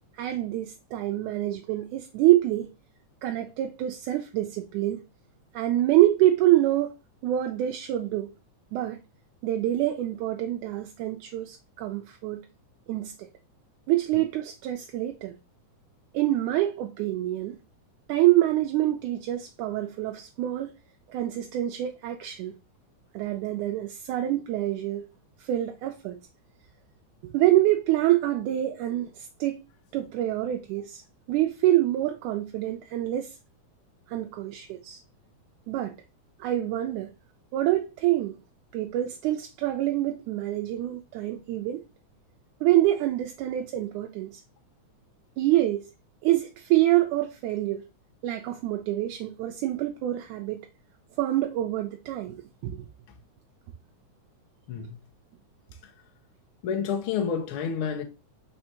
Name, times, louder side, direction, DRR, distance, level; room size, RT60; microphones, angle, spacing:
voice 1, 0.2-2.7 3.2-5.0 5.5-7.0 7.2-8.3 8.7-9.0 9.4-12.4 12.9-13.3 13.9-15.3 16.1-17.6 18.1-20.7 21.1-22.5 23.1-25.0 25.4-26.2 27.2-29.6 29.9-31.0 31.3-33.3 34.1-35.0 35.7-35.9 36.4-37.1 37.5-38.4 38.7-41.8 42.6-44.4 45.4-45.8 46.2-47.9 48.2-50.6 51.2-52.9, right 14 dB, 85° right, 2.0 m, -26 dB
voice 2, 56.6-58.0, left 7 dB, 70° left, 1.2 m, -29 dB
4.4 x 4.3 x 2.8 m
omnidirectional pair, 3.5 m